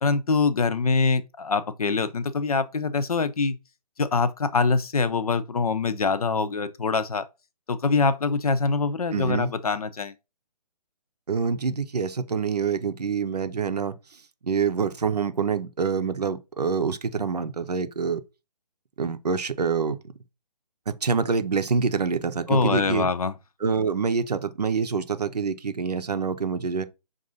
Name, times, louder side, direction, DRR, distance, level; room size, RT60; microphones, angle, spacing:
voice 1, 0.0-3.6 4.0-7.2 7.7-10.1 22.5-23.3, left 4 dB, 60° left, 0.6 m, -24 dB
voice 2, 9.1-9.5 11.3-14.0 14.4-18.2 19.0-20.0 20.9-23.1 23.6-26.8, right 5 dB, 70° right, 0.6 m, -26 dB
5.3 x 2.5 x 3.8 m
figure-of-eight pair, 140°, 21 cm